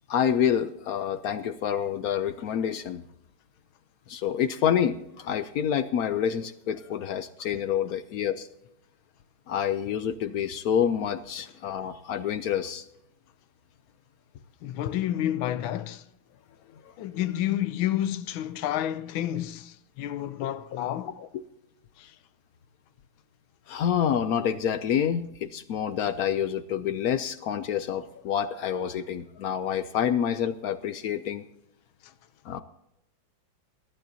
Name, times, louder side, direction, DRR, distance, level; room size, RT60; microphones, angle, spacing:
voice 1, 0.1-3.0 4.1-8.5 9.5-12.8 23.7-31.4 32.5-32.6, left 9 dB, 75° left, 0.8 m, -27 dB
voice 2, 14.6-16.1 17.0-21.1 22.0-22.1, left 12 dB, 90° left, 1.5 m, -30 dB
21.0 x 12.0 x 2.8 m
omnidirectional pair, 2.1 m